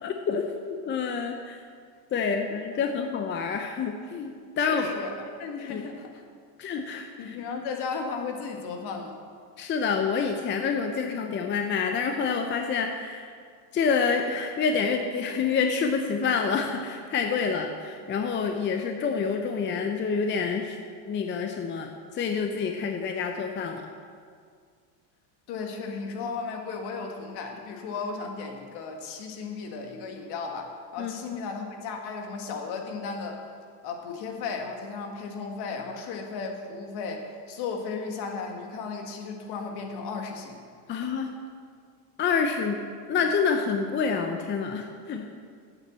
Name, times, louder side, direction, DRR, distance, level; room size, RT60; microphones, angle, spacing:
voice 1, 0.0-1.6 2.1-4.9 5.7-5.8 6.6-7.4 9.6-13.3 13.7-20.8 21.1-21.9 22.1-23.8 31.0-31.1 40.9-41.3 42.2-42.8 43.1-45.3, left 5 dB, 25° left, 4 dB, 0.7 m, -27 dB
voice 2, 4.7-6.2 7.2-9.2 25.5-33.5 33.8-40.6 40.9-41.0, left 4 dB, 55° left, 3 dB, 1.9 m, -35 dB
8.9 x 7.3 x 7.4 m, 2.1 s
supercardioid pair, 120°, 48 cm